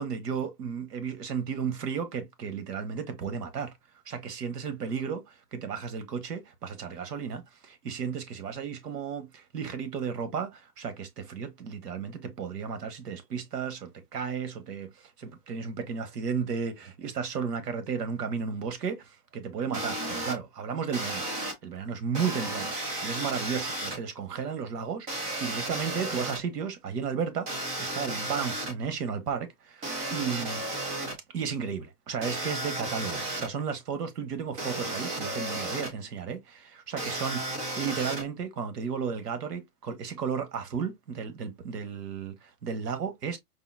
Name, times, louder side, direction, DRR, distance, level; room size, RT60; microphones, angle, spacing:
voice 1, 0.0-3.7 4.1-21.3 21.6-22.7 23.0-30.7 31.3-43.4, right 6 dB, 90° right, 1.3 m, -34 dB
sound 1, 19.7-20.3 20.9-21.5 22.1-24.0 25.1-26.4 27.5-28.7 29.8-31.1 32.2-33.5 34.6-35.9 37.0-38.2, right 1 dB, 15° right, 0.6 m, -33 dB
4.9 x 2.5 x 2.5 m
hypercardioid pair, 150°, 46 cm